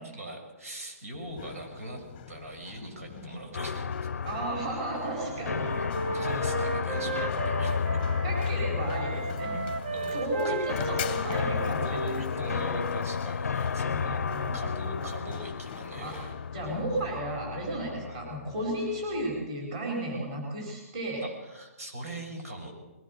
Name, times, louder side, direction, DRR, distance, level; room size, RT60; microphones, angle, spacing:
voice 1, 0.1-3.9 5.8-7.9 9.9-10.6 11.8-14.3 14.5-16.3 18.0-18.2 21.2-22.7, right 1 dB, 70° right, 3 dB, 6.9 m, -41 dB
Run, 1.1-17.2, left 10 dB, 20° left, 0.9 m, -46 dB
sound 1, 3.5-19.5, left 6 dB, 85° left, 0.6 m, -33 dB
voice 2, 4.2-5.7 8.2-9.5 10.1-12.7 13.9-14.5 16.0-16.1 16.5-21.3, right 1 dB, 25° right, -2 dB, 4.7 m, -34 dB
Wind instrument woodwind instrument, 5.0-8.6 8.9-12.7, right 3 dB, 40° right, 1.2 m, -35 dB
21.5 x 18.5 x 6.7 m, 1.1 s
hypercardioid pair, 180°, 8 cm